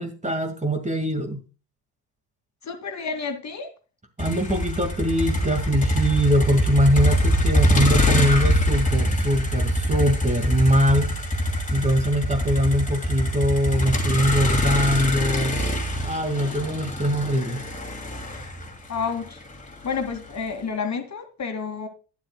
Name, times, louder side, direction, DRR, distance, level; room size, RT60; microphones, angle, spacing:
voice 1, 0.0-1.4 4.2-11.2 11.7-15.6 16.0-17.6, equal, 15° right, 6 dB, 1.9 m, -22 dB
voice 2, 2.6-3.7 18.9-19.4 19.8-21.9, left 5 dB, 35° left, 6 dB, 2.3 m, -30 dB
Motor vehicle (road), 4.2-20.3, left 1 dB, 15° left, 2.6 m, -24 dB
11.5 x 10.5 x 2.2 m, 0.34 s
figure-of-eight pair, 55°, 49 cm